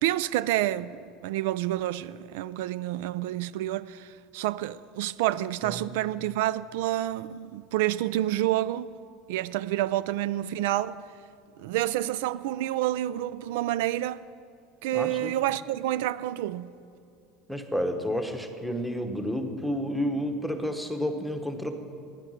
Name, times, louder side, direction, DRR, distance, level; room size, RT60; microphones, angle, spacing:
voice 1, 0.0-8.9 9.3-11.0 11.6-14.2 14.8-16.7, right 14 dB, 80° right, 0.3 m, -28 dB
voice 2, 14.9-15.3 17.5-21.7, equal, ahead, 1.0 m, -30 dB
15.0 x 10.0 x 6.4 m
cardioid pair, 155°, 0 cm